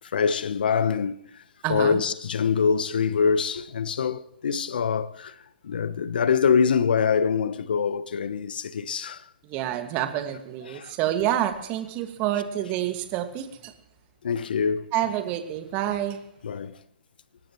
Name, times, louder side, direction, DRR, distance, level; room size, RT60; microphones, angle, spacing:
voice 1, 0.0-1.4 1.7-5.3 5.6-9.2 10.7-10.9 14.2-14.9 16.4-16.8, left 6 dB, 65° left, 1.0 m, -24 dB
voice 2, 1.6-2.0 9.4-13.7 14.9-16.2, right 12 dB, 30° right, 2.1 m, -28 dB
25.5 x 18.0 x 3.2 m
hypercardioid pair, 130°, 5 cm